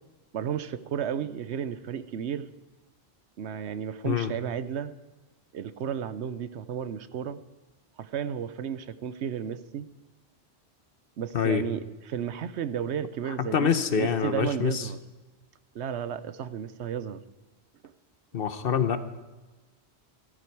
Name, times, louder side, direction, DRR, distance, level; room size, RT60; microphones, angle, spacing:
voice 1, 0.3-2.5 3.4-4.9 5.5-7.4 8.0-9.9 11.2-15.0 15.7-17.2, right 8 dB, 80° right, 13 dB, 1.0 m, -33 dB
voice 2, 13.4-14.8 18.3-19.1, left 7 dB, 60° left, 11 dB, 1.0 m, -26 dB
14.5 x 13.0 x 4.7 m, 1.2 s
omnidirectional pair, 1.1 m